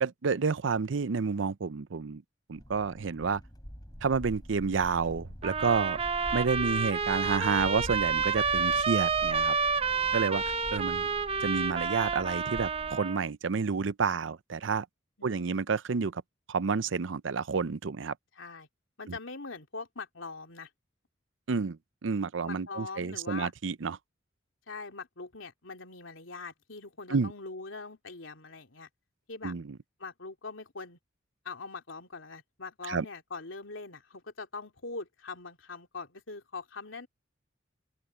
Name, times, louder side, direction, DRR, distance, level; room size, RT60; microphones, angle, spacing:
voice 1, 0.0-2.2 2.5-3.4 4.0-6.0 6.3-9.5 10.1-10.4 10.7-11.1 11.4-14.9 15.2-16.2 16.5-18.1 21.5-24.0 27.1-27.3 29.4-29.8 32.9-33.1, right 5 dB, 70° right, 0.6 m, -30 dB
sound 1, 2.5-13.0, equal, 20° left, 5.7 m, -45 dB
sound 2, 5.4-13.2, right 5 dB, 30° right, 0.7 m, -29 dB
voice 2, 9.8-10.2 15.2-15.6 18.3-18.7 19.0-20.7 22.4-23.5 24.7-28.9 29.3-29.5 30.0-31.0 31.4-37.1, left 4 dB, 85° left, 3.1 m, -42 dB
open air
head